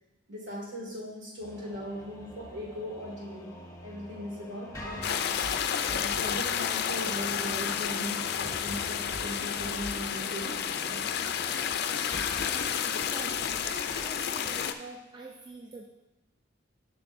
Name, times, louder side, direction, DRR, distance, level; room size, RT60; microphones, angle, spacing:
voice 1, 0.3-3.5 3.8-5.4 6.0-11.2, equal, 65° right, -3 dB, 2.1 m, -39 dB
sound 1, 1.4-12.7, left 1 dB, 15° left, 0.9 m, -44 dB
sound 2, 5.0-14.7, left 8 dB, 55° left, 0.3 m, -31 dB
sound 3, 5.3-9.8, left 2 dB, 40° right, 2.3 m, -50 dB
voice 2, 13.6-15.9, right 2 dB, 25° right, 0 dB, 0.4 m, -44 dB
8.8 x 5.9 x 2.6 m, 0.96 s
head